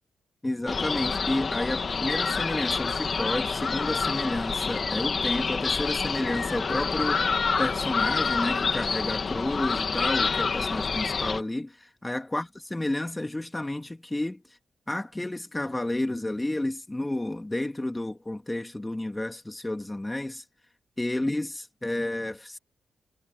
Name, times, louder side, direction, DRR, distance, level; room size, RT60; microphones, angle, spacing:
voice 1, 0.4-7.2 7.6-14.4 14.9-20.4 21.0-22.6, left 1 dB, 15° left, 2.9 m, -31 dB
sound 1, 0.7-11.4, left 5 dB, 50° left, 3.0 m, -27 dB
cardioid pair, 60°, 0 cm